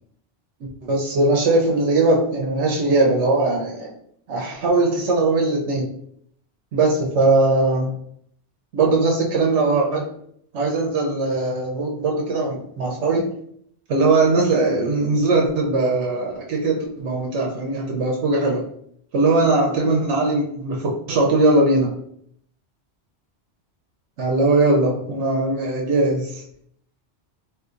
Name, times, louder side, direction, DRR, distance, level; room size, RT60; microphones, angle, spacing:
voice 1, 0.6-3.9 4.3-5.9 6.7-7.9 8.7-10.1 10.5-13.3 13.9-18.6 19.1-21.9 24.2-26.4, right 2 dB, 80° right, 0 dB, 0.9 m, -20 dB
3.8 x 2.6 x 2.4 m, 0.68 s
omnidirectional pair, 1.2 m